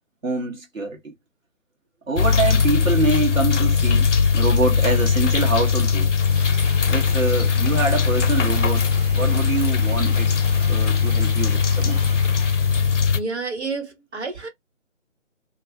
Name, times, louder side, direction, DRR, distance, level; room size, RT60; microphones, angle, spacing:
voice 1, 0.2-1.1 2.1-6.1 6.9-8.8 9.1-10.3 10.7-12.0, right 3 dB, 85° right, 1.1 m, -25 dB
sound 1, 2.2-13.2, left 5 dB, 65° left, 0.5 m, -20 dB
Domestic sounds home sounds, 6.2-13.3, right 2 dB, 40° right, 0.5 m, -42 dB
voice 2, 13.1-14.5, right 4 dB, 55° right, 1.3 m, -30 dB
2.4 x 2.3 x 2.7 m
figure-of-eight pair, 150°, 39 cm